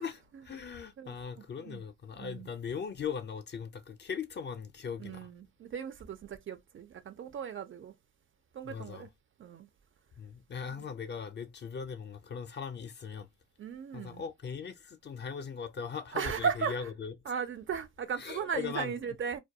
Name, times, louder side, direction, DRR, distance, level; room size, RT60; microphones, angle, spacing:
voice 1, 0.0-5.3 8.6-9.1 10.2-13.3 13.9-17.1 18.2-19.0, left 6 dB, 35° left, 0.4 m, -39 dB
voice 2, 1.0-1.8 2.1-2.5 5.0-7.9 8.5-9.1 9.4-9.7 10.7-10.8 13.6-14.2 16.1-16.9 17.3-19.4, right 7 dB, 40° right, 0.4 m, -37 dB
2.2 x 2.2 x 2.6 m
cardioid pair, 85°, 31 cm